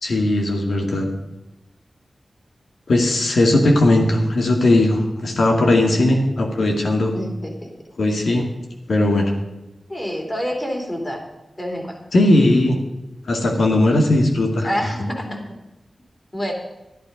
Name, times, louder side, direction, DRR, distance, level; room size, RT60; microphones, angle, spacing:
voice 1, 0.0-1.1 2.9-7.1 8.0-8.5 8.9-9.3 12.1-12.8 13.3-14.7, left 1 dB, 85° left, 2 dB, 2.1 m, -18 dB
voice 2, 7.1-7.7 9.9-11.2 11.6-12.0 14.6-15.4 16.3-16.5, equal, 25° left, 1 dB, 3.3 m, -27 dB
11.5 x 10.5 x 5.3 m, 1.0 s
cardioid pair, 55°, 0 cm